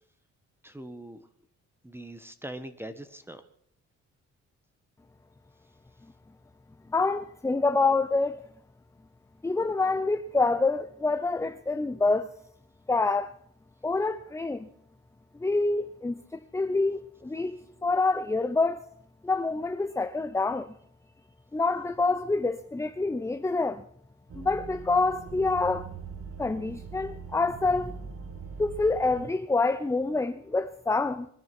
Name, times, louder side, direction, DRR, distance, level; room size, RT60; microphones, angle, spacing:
voice 1, 0.6-1.2 1.8-3.4, right 1 dB, 10° right, 1.3 m, -41 dB
voice 2, 6.9-8.4 9.4-12.3 12.9-13.3 13.8-14.7 15.4-18.8 19.2-20.7 21.5-23.8 24.3-25.9 26.4-28.0 28.6-31.3, left 3 dB, 10° left, 0.6 m, -27 dB
sound 1, 24.3-29.3, right 5 dB, 50° right, 1.5 m, -42 dB
23.0 x 10.5 x 6.0 m
cardioid pair, 90°, 30 cm